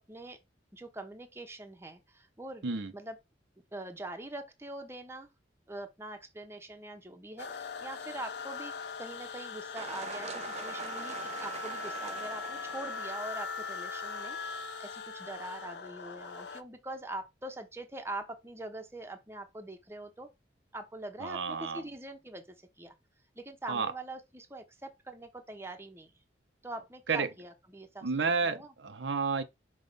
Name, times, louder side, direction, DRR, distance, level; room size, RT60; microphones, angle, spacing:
voice 1, 0.1-0.4 0.7-3.2 3.7-5.3 5.7-8.7 9.0-14.4 14.8-20.3 20.7-22.4 22.8-22.9 23.4-26.1 26.6-28.1 28.4-28.7, right 2 dB, 15° right, 0.9 m, -43 dB
sound 1, 7.4-16.6, left 4 dB, 65° left, 0.6 m, -40 dB
sound 2, 9.7-13.5, right 5 dB, 35° right, 0.5 m, -44 dB
voice 2, 21.2-21.8 23.7-23.9 27.1-27.3 28.0-29.4, right 4 dB, 80° right, 0.7 m, -31 dB
5.9 x 3.1 x 5.2 m
head